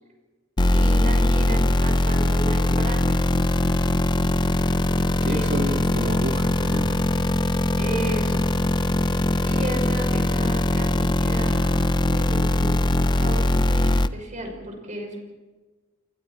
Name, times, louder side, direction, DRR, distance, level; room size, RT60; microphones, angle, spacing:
sound 1, 0.6-14.1, left 1 dB, 20° left, 0.6 m, -21 dB
voice 1, 0.7-3.4 5.2-5.7 7.8-8.4 9.4-15.2, right 1 dB, 40° right, 3 dB, 5.9 m, -34 dB
voice 2, 5.2-7.3, right 1 dB, 55° right, 3 dB, 2.4 m, -31 dB
30.0 x 24.0 x 4.5 m, 1.3 s
head